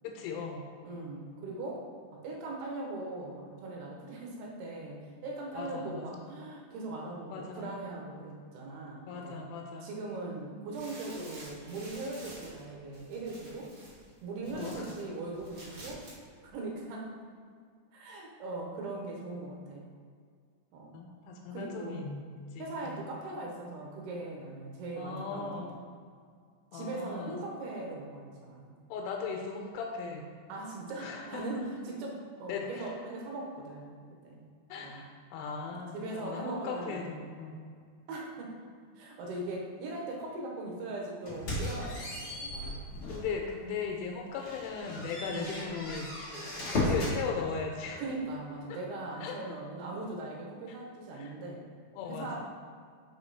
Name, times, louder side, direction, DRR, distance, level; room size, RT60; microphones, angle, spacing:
voice 1, 0.0-0.6 5.6-6.1 7.3-7.7 9.1-9.9 14.5-14.9 20.9-22.2 22.6-23.0 25.0-25.8 26.7-27.4 28.9-30.3 31.0-31.4 32.5-32.9 34.7-37.6 43.1-46.1 46.7-48.0 49.2-49.6 50.7-50.8 51.2-51.3 51.9-52.4, left 5 dB, 90° left, 1 dB, 3.2 m, -38 dB
voice 2, 0.8-9.4 9.8-13.7 14.2-16.0 16.4-17.1 17.9-19.9 20.7-21.0 21.5-22.0 22.6-25.6 26.7-28.7 30.5-34.5 34.8-35.0 35.7-37.1 38.1-38.6 39.0-42.8 45.2-45.7 46.7-47.2 48.0-51.7 52.0-52.4, right 2 dB, 75° right, -1 dB, 3.3 m, -40 dB
sound 1, 10.7-15.0 15.3-16.2 16.4-16.5, right 1 dB, 45° right, 1.2 m, -50 dB
sound 2, 41.3-43.3 43.8-43.9 44.4-47.2, left 1 dB, 65° left, 1.3 m, -35 dB
9.8 x 5.3 x 4.1 m, 2.1 s
omnidirectional pair, 5.6 m